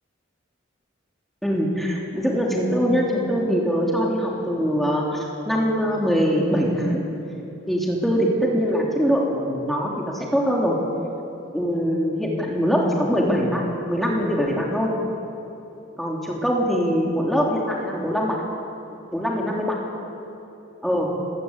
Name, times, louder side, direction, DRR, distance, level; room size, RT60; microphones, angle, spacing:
voice 1, 1.4-7.0 7.7-10.8 11.5-13.6 13.9-14.9 16.0-18.4 19.1-19.8 20.8-21.1, equal, ahead, -2 dB, 3.2 m, -22 dB
29.0 x 16.0 x 8.2 m, 2.9 s
head